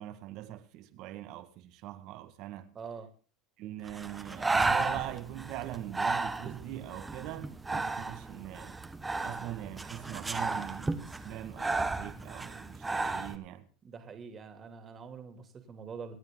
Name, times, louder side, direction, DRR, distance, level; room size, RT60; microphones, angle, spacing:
voice 1, 0.0-2.7 3.6-8.8 9.2-13.7, right 14 dB, 60° right, 1.8 m, -42 dB
voice 2, 2.7-3.1 13.8-16.2, right 5 dB, 30° right, 3.0 m, -45 dB
Breathing, 3.9-13.4, right 3 dB, 15° right, 1.6 m, -34 dB
27.0 x 9.1 x 3.9 m
supercardioid pair, 105°, 0 cm